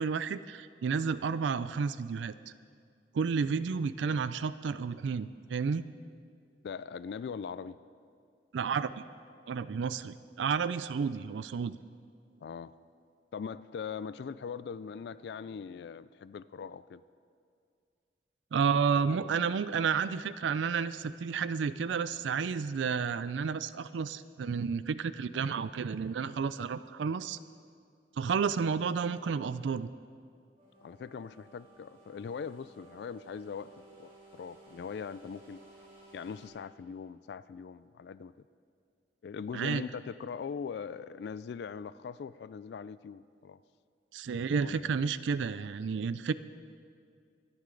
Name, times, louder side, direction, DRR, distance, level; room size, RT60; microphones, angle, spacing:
voice 1, 0.0-2.3 3.1-5.9 8.5-8.9 9.5-11.8 18.5-27.4 28.2-29.9 39.5-39.8 44.1-46.3, right 6 dB, 90° right, 14 dB, 0.4 m, -31 dB
voice 2, 6.6-7.8 12.4-12.7 13.3-17.0 30.8-35.6 36.1-38.3 39.2-43.6 44.5-45.0, left 6 dB, 65° left, 16 dB, 0.3 m, -41 dB
sound 1, 30.6-36.5, right 2 dB, 30° right, 4.5 m, -57 dB
23.5 x 9.7 x 3.9 m, 2.3 s
head